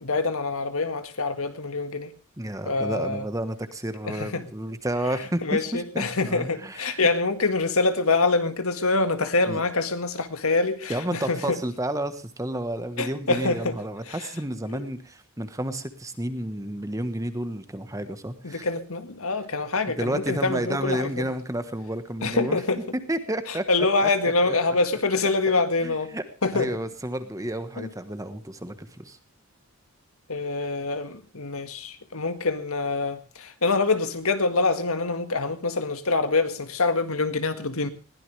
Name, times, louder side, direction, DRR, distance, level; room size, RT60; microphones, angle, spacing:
voice 1, 0.0-2.1 2.7-3.2 4.0-4.4 5.4-11.6 13.0-13.8 14.1-14.3 14.7-14.9 18.4-21.3 22.2-22.8 23.7-26.1 26.4-26.7 27.8-27.9 30.3-37.9, left 3 dB, 75° left, 9 dB, 1.8 m, -25 dB
voice 2, 2.4-7.0 9.5-9.6 10.9-18.7 19.9-22.6 23.1-23.6 24.0-24.5 25.8-26.2 26.5-29.2, right 1 dB, 15° right, 10 dB, 1.3 m, -31 dB
21.0 x 16.5 x 3.4 m, 0.33 s
head